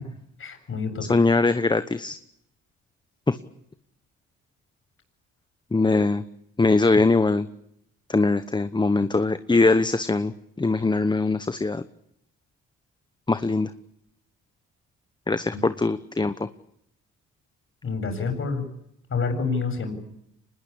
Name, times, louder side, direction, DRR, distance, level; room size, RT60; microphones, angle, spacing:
voice 1, 0.4-1.1 15.5-15.6 17.8-18.6 19.1-20.0, left 4 dB, 45° left, 6 dB, 7.7 m, -28 dB
voice 2, 1.1-2.2 3.3-3.4 5.7-6.2 6.6-7.5 8.1-10.3 10.6-11.8 13.3-13.7 15.3-16.4, left 3 dB, 15° left, 11 dB, 1.0 m, -21 dB
25.5 x 20.5 x 8.6 m, 0.76 s
cardioid pair, 90°, 30 cm